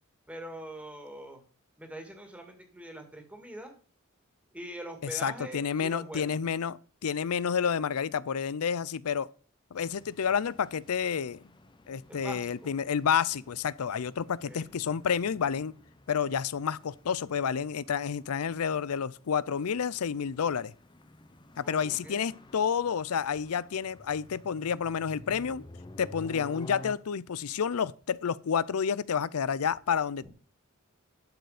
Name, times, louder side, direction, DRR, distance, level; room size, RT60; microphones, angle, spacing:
voice 1, 0.3-1.4 1.8-3.7 4.5-6.4 12.1-12.8 14.4-14.7 21.6-22.3 30.2-30.3, right 1 dB, 5° right, 2.1 m, -43 dB
voice 2, 5.1-9.3 9.7-11.4 11.9-15.7 16.1-20.7 21.6-25.6 26.0-30.3, left 7 dB, 85° left, 0.5 m, -30 dB
sound 1, 9.7-26.9, left 1 dB, 20° left, 0.7 m, -52 dB
12.0 x 6.8 x 5.0 m
head